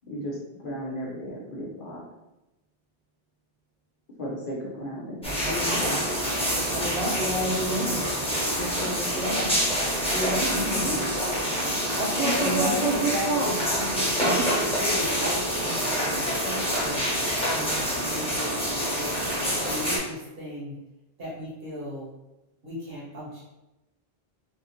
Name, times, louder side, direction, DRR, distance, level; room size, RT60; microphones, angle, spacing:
voice 1, 0.1-2.0 4.2-5.4 5.7-6.0 10.5-11.0 12.4-12.8, left 1 dB, 60° left, -3 dB, 1.0 m, -34 dB
sound 1, 5.2-20.0, equal, 5° left, 0.9 m, -26 dB
voice 2, 5.5-5.9 6.7-8.1 8.6-9.6 10.1-11.0 11.9-13.7 14.0-14.1, right 2 dB, 45° right, -2 dB, 0.8 m, -30 dB
voice 3, 12.1-17.0 17.5-18.5 18.9-19.1 19.6-20.8 21.2-22.1 22.6-23.4, equal, 65° right, -7 dB, 1.6 m, -35 dB
3.5 x 2.5 x 2.8 m, 0.96 s
omnidirectional pair, 1.0 m